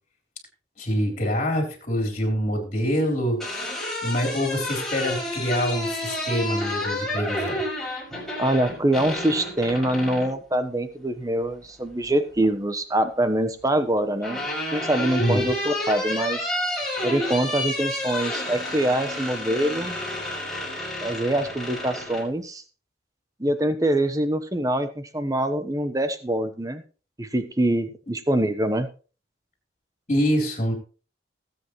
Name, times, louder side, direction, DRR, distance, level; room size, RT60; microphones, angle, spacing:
voice 1, 0.8-3.4 4.0-7.6 15.2-15.4 30.1-30.7, equal, 35° left, 3 dB, 3.8 m, -25 dB
sound 1, 3.2-10.3 11.8-12.5 13.7-22.3, left 1 dB, ahead, 6.1 m, -30 dB
voice 2, 8.4-14.4 14.7-16.5 17.0-20.0 21.0-22.6 23.4-26.8 27.2-28.9, right 1 dB, 20° right, 10 dB, 1.1 m, -24 dB
19.5 x 8.2 x 3.2 m, 0.36 s
head